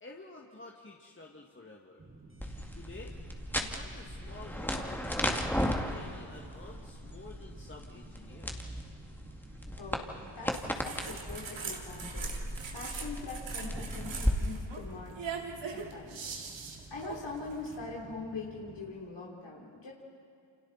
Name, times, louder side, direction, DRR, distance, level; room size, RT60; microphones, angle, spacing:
voice 1, 0.0-2.0 2.7-3.2 3.6-8.9, left 2 dB, 25° left, -1 dB, 2.1 m, -50 dB
sound 1, 2.0-19.0, right 3 dB, 25° right, 2.3 m, -53 dB
sound 2, 2.4-14.3, equal, 5° left, 2.3 m, -36 dB
voice 2, 9.8-16.2 16.9-19.9, left 4 dB, 65° left, -4 dB, 3.6 m, -43 dB
sound 3, 10.5-17.8, right 5 dB, 70° right, 2.8 m, -42 dB
29.0 x 26.5 x 4.2 m, 2.5 s
cardioid pair, 65°, 46 cm